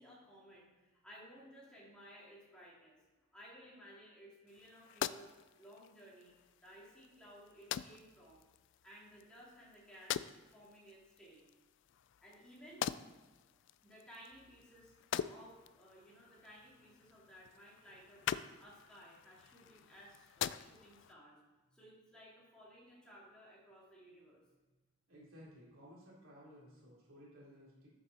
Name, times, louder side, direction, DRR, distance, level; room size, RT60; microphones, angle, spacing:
voice 1, 0.0-3.0 3.3-5.3 5.6-6.3 6.6-8.5 8.8-10.2 10.5-11.5 12.2-12.8 13.8-14.9 15.3-18.2 18.6-21.4 21.6-24.4, equal, 5° left, -7 dB, 2.7 m, -58 dB
sound 1, 4.5-21.1, left 9 dB, 60° left, 0.3 m, -45 dB
voice 2, 25.1-27.9, equal, 65° right, -6 dB, 3.5 m, -57 dB
12.5 x 6.9 x 4.2 m, 1.3 s
head